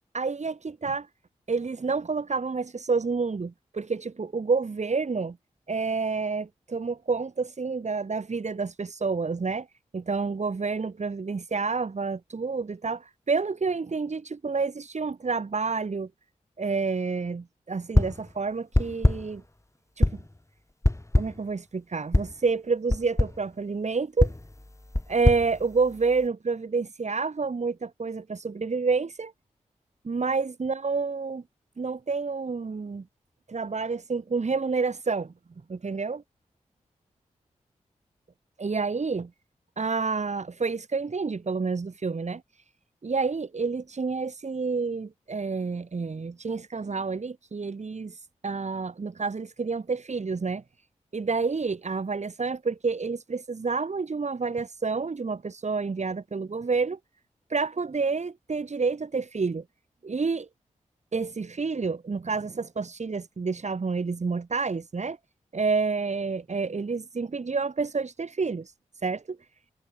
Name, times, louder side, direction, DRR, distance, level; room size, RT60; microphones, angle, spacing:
voice 1, 0.1-1.1 1.5-5.4 5.7-9.7 9.9-16.1 16.6-19.4 20.0-20.2 21.2-24.3 25.1-29.3 30.1-31.4 31.8-33.0 33.5-35.3 35.7-36.2 38.6-39.3 39.8-42.4 43.0-48.2 48.4-50.6 51.1-57.0 57.5-59.6 60.0-60.5 61.1-65.2 65.5-68.7 69.0-69.4, right 4 dB, 60° right, 5.3 m, -29 dB
sound 1, 17.9-18.3 18.7-19.4 20.0-20.4 20.8-21.5 22.1-22.4 22.9-23.4 24.2-26.3, left 1 dB, 20° left, 6.0 m, -25 dB
cardioid pair, 45°, 14 cm